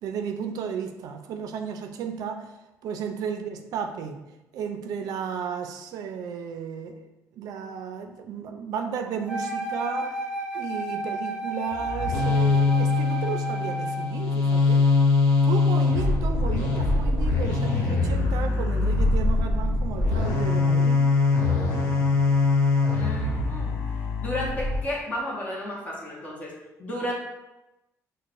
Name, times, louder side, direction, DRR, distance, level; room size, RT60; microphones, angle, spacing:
voice 1, 0.0-2.5 2.8-4.2 4.5-7.0 7.4-10.2 10.5-14.9 15.5-21.0, right 7 dB, 85° right, 6 dB, 0.4 m, -33 dB
Wind instrument woodwind instrument, 9.3-14.2, right 1 dB, 15° right, 0.4 m, -32 dB
sound 1, 11.7-24.8, left 3 dB, 90° left, 1.0 m, -23 dB
voice 2, 23.0-23.8 24.2-26.5 26.8-27.1, left 1 dB, 25° left, -3 dB, 0.8 m, -32 dB
6.3 x 2.1 x 2.5 m, 0.98 s
cardioid pair, 175°, 6 cm